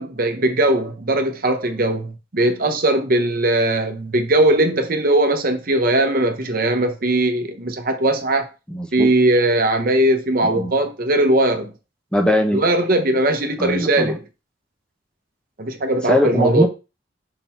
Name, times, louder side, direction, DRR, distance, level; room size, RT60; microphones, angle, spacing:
voice 1, 0.0-8.5 8.9-11.7 12.5-14.2 15.6-16.7, right 1 dB, 50° right, 0.9 m, -19 dB
voice 2, 8.7-9.1 10.6-10.7 12.1-12.6 13.6-14.2 16.1-16.7, equal, 5° left, 0.9 m, -20 dB
5.6 x 3.8 x 4.4 m
head